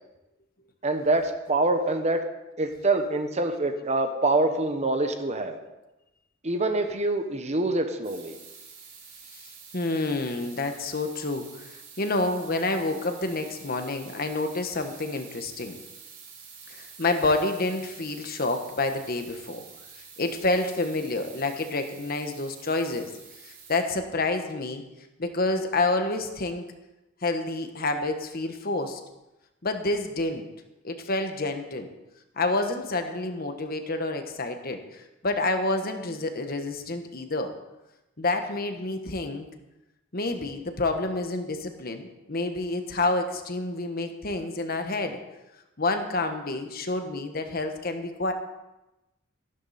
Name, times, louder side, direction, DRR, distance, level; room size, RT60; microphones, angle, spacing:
voice 1, 0.8-2.2 2.6-5.6 6.4-8.4, right 2 dB, 35° right, 7 dB, 1.1 m, -25 dB
sound 1, 8.0-23.8, right 6 dB, 75° right, 4.6 m, -48 dB
voice 2, 9.4-15.8 16.7-19.6 20.2-23.1 23.4-24.8 25.2-26.7 27.2-29.0 29.6-30.4 30.8-31.9 32.4-37.5 38.2-39.4 40.1-45.2 45.8-48.3, left 2 dB, 45° left, 6 dB, 1.3 m, -28 dB
14.0 x 12.5 x 4.2 m, 0.98 s
head